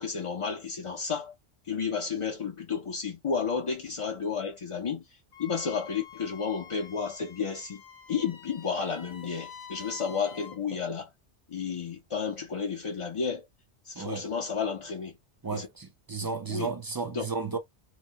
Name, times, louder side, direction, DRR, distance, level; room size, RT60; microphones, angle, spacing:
voice 1, 0.0-1.3 1.6-7.8 8.1-11.1 11.5-13.5 13.8-15.2 15.5-15.7 16.2-16.7 17.1-17.2, left 6 dB, 40° left, 0.4 m, -32 dB
Wind instrument woodwind instrument, 5.3-10.6, left 6 dB, 65° left, 0.9 m, -48 dB
voice 2, 14.0-14.3 15.4-17.6, right 4 dB, 35° right, 0.3 m, -33 dB
3.0 x 2.1 x 2.7 m
omnidirectional pair, 1.2 m